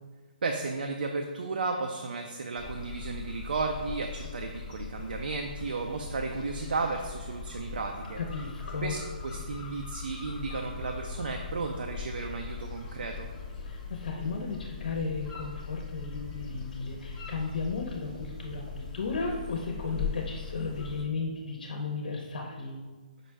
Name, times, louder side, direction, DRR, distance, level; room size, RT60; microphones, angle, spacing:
voice 1, 0.4-8.2 8.8-9.0 9.2-13.3, right 4 dB, 80° right, 3 dB, 0.4 m, -34 dB
sound 1, 2.6-21.0, left 5 dB, 15° left, 0.5 m, -40 dB
voice 2, 8.2-9.0 13.6-22.8, left 4 dB, 65° left, 1 dB, 0.6 m, -34 dB
5.1 x 2.1 x 4.5 m, 1.4 s
hypercardioid pair, 170°, 5 cm